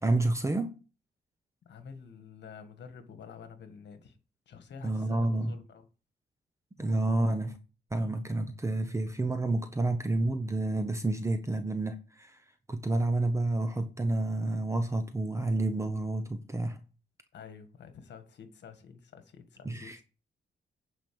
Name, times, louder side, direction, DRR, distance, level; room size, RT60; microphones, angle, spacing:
voice 1, 0.0-0.7 4.8-5.5 6.8-7.6 7.9-12.4 12.7-16.8 19.6-20.0, right 2 dB, 15° right, 0.9 m, -29 dB
voice 2, 1.6-4.2 4.4-5.9 17.3-20.0, left 6 dB, 65° left, 1.7 m, -49 dB
9.1 x 5.3 x 6.9 m
cardioid pair, 125°, 19 cm